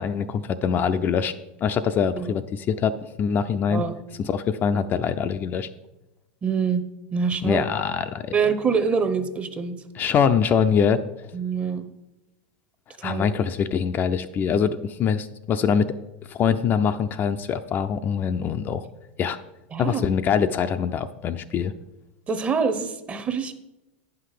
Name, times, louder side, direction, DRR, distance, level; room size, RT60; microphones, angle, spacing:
voice 1, 0.0-1.3 1.6-3.8 4.2-5.7 7.4-8.3 10.0-11.0 13.0-16.0 16.3-18.9 19.2-19.4 19.8-21.7, left 7 dB, 35° left, 9 dB, 0.4 m, -23 dB
voice 2, 6.4-6.8 7.1-7.6 8.3-9.8 11.3-11.9 13.0-13.3 19.7-20.1 22.3-23.5, right 5 dB, 25° right, 9 dB, 0.8 m, -25 dB
9.3 x 5.8 x 4.9 m, 0.97 s
hypercardioid pair, 110°, 6 cm